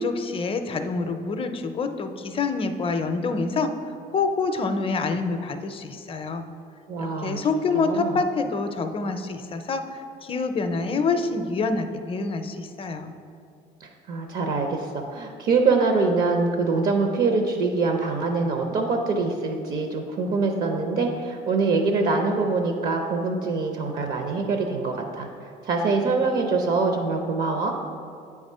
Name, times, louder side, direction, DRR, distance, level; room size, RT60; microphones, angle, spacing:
voice 1, 0.0-3.7 4.1-6.4 7.0-13.1, left 4 dB, 35° left, 7 dB, 0.5 m, -26 dB
voice 2, 6.9-7.4 7.7-8.2 13.8-27.7, right 3 dB, 60° right, 3 dB, 0.6 m, -24 dB
7.9 x 3.6 x 5.4 m, 2.4 s
cardioid pair, 110°, 17 cm